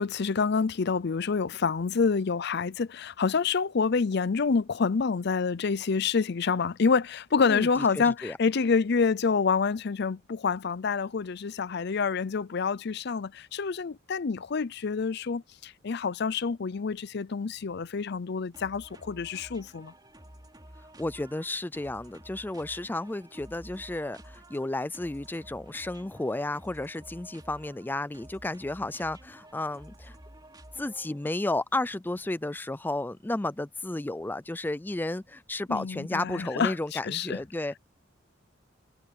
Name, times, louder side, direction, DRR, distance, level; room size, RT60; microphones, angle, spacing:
voice 1, 0.0-19.9 35.7-37.4, left 5 dB, 60° left, 0.5 m, -27 dB
voice 2, 7.5-8.4 21.0-30.2 30.8-37.8, left 2 dB, 10° left, 0.4 m, -32 dB
sound 1, 18.5-31.3, right 1 dB, 20° right, 3.0 m, -51 dB
head